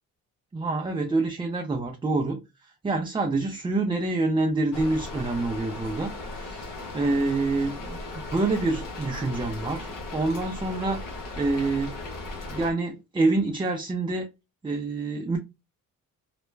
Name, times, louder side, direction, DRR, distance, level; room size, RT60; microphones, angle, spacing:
voice 1, 0.5-2.4 2.8-11.9 12.5-14.3 14.6-15.4, right 2 dB, 15° right, 0.5 m, -27 dB
Rain, 4.7-12.7, left 2 dB, 65° left, 1.2 m, -37 dB
3.2 x 2.1 x 3.1 m
cardioid pair, 90°, 36 cm